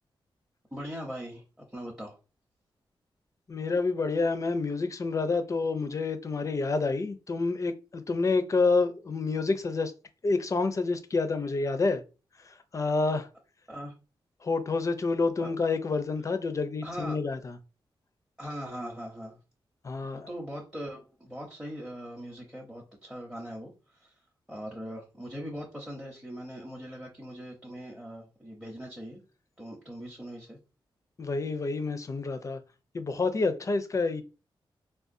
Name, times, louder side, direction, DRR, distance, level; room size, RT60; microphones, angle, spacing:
voice 1, 0.7-2.2 13.7-13.9 15.4-15.5 16.8-17.2 18.4-19.4 20.1-24.1 24.5-29.2 29.6-30.6, equal, 5° right, 0.7 m, -40 dB
voice 2, 3.5-9.9 10.2-12.0 12.5-13.3 14.4-17.6 19.8-20.3 31.2-32.6 32.9-34.2, left 3 dB, 35° left, 0.4 m, -28 dB
3.6 x 2.2 x 2.5 m
wide cardioid pair, 110°, 9 cm